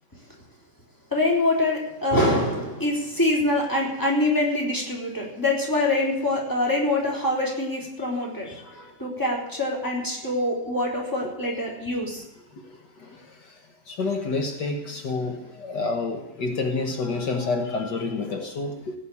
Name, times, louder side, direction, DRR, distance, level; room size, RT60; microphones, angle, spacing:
voice 1, 1.1-8.5 9.0-12.2, left 1 dB, 10° left, -3 dB, 3.9 m, -24 dB
voice 2, 8.5-8.9 13.0-13.3 13.9-18.9, left 3 dB, 75° left, 4 dB, 2.1 m, -29 dB
17.0 x 6.6 x 8.6 m, 0.89 s
omnidirectional pair, 1.9 m